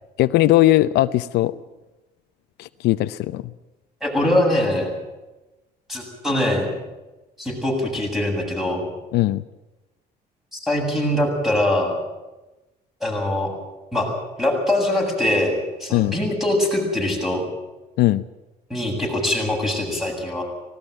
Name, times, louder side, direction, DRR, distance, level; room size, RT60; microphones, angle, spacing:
voice 1, 0.2-1.5 2.6-3.4 9.1-9.4 15.9-16.1 18.0-18.2, left 15 dB, 80° left, 13 dB, 0.7 m, -18 dB
voice 2, 4.0-4.9 5.9-6.7 7.4-8.9 10.5-11.9 13.0-13.5 13.9-14.1 14.4-17.4 18.7-20.4, left 1 dB, ahead, 1 dB, 7.9 m, -22 dB
19.0 x 17.5 x 9.2 m, 1.1 s
cardioid pair, 110°, 17 cm